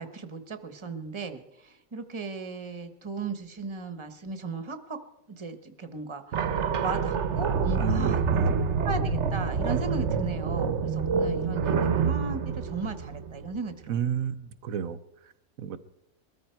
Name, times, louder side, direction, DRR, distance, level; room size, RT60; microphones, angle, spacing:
voice 1, 0.0-5.0 5.3-6.5 6.8-8.2 8.8-13.9, right 4 dB, 25° right, 9 dB, 1.2 m, -36 dB
sound 1, 6.3-13.7, right 5 dB, 60° right, 1.1 m, -27 dB
voice 2, 7.7-8.5 13.9-15.0 15.2-15.3 15.6-15.8, right 7 dB, 90° right, 11 dB, 1.2 m, -31 dB
21.5 x 13.5 x 4.5 m, 0.83 s
omnidirectional pair, 1.4 m